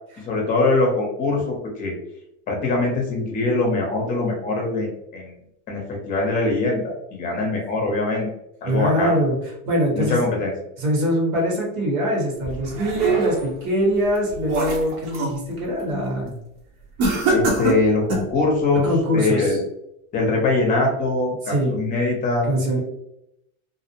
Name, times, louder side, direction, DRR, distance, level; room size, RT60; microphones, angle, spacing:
voice 1, 0.3-1.9 2.5-5.3 5.7-8.3 8.6-9.2 9.9-10.5 17.3-18.9 19.1-19.6 20.1-22.5, left 2 dB, 20° left, -1 dB, 0.6 m, -22 dB
voice 2, 8.6-9.4 9.7-10.2 10.8-16.3 18.8-19.6 21.4-21.8 22.5-22.8, equal, 80° right, -2 dB, 1.3 m, -23 dB
sound 1, 12.4-13.6 14.1-15.4 15.8-16.1 17.0-18.4, right 3 dB, 60° right, 0.9 m, -24 dB
2.5 x 2.0 x 2.7 m, 0.80 s
supercardioid pair, 150°, 42 cm